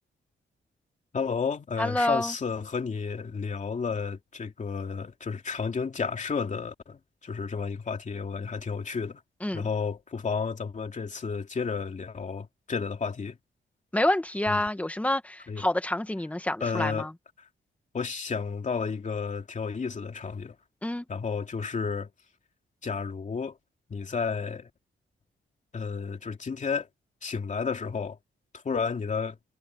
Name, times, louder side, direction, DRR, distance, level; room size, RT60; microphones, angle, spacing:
voice 1, 1.1-9.2 9.5-13.4 14.5-14.6 15.5-15.6 16.6-17.1 17.4-17.5 17.9-20.6 21.1-22.1 22.8-23.6 23.9-24.7 25.7-26.9 27.2-28.2 28.6-29.4, left 5 dB, 40° left, 2.7 m, -32 dB
voice 2, 1.8-2.3 9.4-9.6 13.9-17.1 20.8-21.0, left 1 dB, 5° left, 1.5 m, -28 dB
wide cardioid pair, 155°, 20 cm